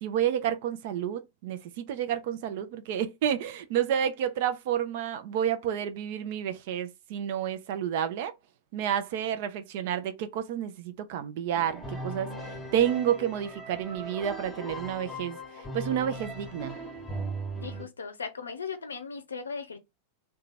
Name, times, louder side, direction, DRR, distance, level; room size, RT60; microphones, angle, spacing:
voice 1, 0.0-8.3 8.7-16.8, right 9 dB, 50° right, 0.5 m, -30 dB
sound 1, 11.6-17.8, right 1 dB, 10° left, 1.0 m, -38 dB
voice 2, 17.6-19.8, left 5 dB, 70° left, 0.5 m, -37 dB
2.8 x 2.3 x 4.0 m
figure-of-eight pair, 90°, 0 cm